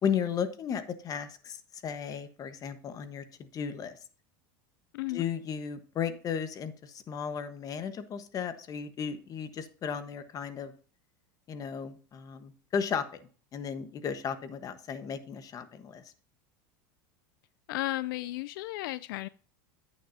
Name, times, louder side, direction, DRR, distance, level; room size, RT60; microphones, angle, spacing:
voice 1, 0.0-4.0 5.1-10.7 11.5-16.0, left 7 dB, 30° left, 1.2 m, -35 dB
voice 2, 4.9-5.2 17.7-19.3, left 17 dB, 80° left, 0.4 m, -34 dB
10.0 x 8.7 x 2.7 m
supercardioid pair, 130°, 11 cm